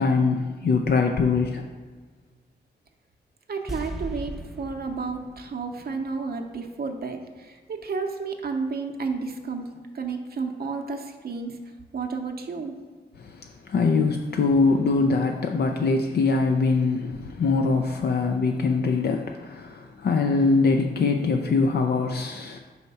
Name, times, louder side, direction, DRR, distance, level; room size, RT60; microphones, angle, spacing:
voice 1, 0.0-1.6 13.2-22.6, left 4 dB, 65° left, 4 dB, 0.5 m, -23 dB
voice 2, 3.5-11.6 11.9-12.7, right 4 dB, 60° right, 4 dB, 0.7 m, -32 dB
sound 1, 3.7-6.9 7.1-7.2, right 1 dB, ahead, 0.7 m, -38 dB
4.6 x 4.2 x 5.4 m, 1.5 s
cardioid pair, 60°, 18 cm